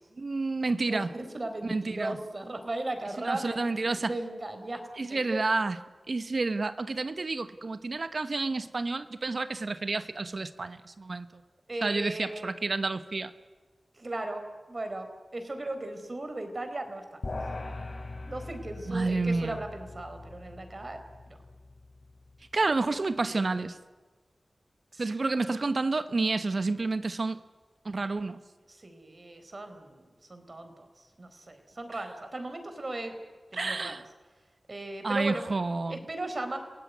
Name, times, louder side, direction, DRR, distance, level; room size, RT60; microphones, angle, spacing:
voice 1, 0.2-1.1 1.7-2.2 3.2-4.1 5.0-5.8 6.1-11.3 11.8-13.3 18.9-19.6 22.5-23.8 25.0-27.4 27.8-28.4 33.5-34.0 35.0-36.0, right 3 dB, 60° right, 11 dB, 1.1 m, -30 dB
voice 2, 0.9-3.6 4.0-4.8 5.1-5.4 11.7-12.5 13.9-14.4 14.7-17.3 18.3-21.0 21.3-21.4 24.9-25.1 28.0-28.1 28.7-33.1 33.5-33.9 34.7-35.4 35.9-36.6, right 2 dB, 45° right, 7 dB, 4.3 m, -37 dB
sound 1, 17.2-22.7, left 2 dB, 65° left, 4.1 m, -41 dB
29.0 x 17.0 x 9.5 m, 1.3 s
cardioid pair, 50°, 0 cm